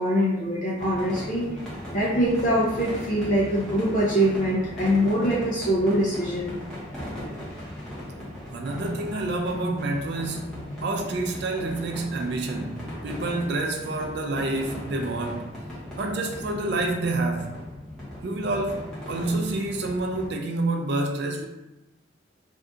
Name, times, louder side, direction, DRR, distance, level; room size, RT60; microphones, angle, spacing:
voice 1, 0.0-1.4 1.9-6.6, equal, 40° left, -7 dB, 0.6 m, -23 dB
sound 1, 0.8-20.3, left 1 dB, 5° left, 0.9 m, -38 dB
voice 2, 8.5-15.5 16.0-17.5 18.2-21.5, right 2 dB, 55° right, 2 dB, 0.3 m, -28 dB
2.6 x 2.4 x 3.5 m, 0.96 s
head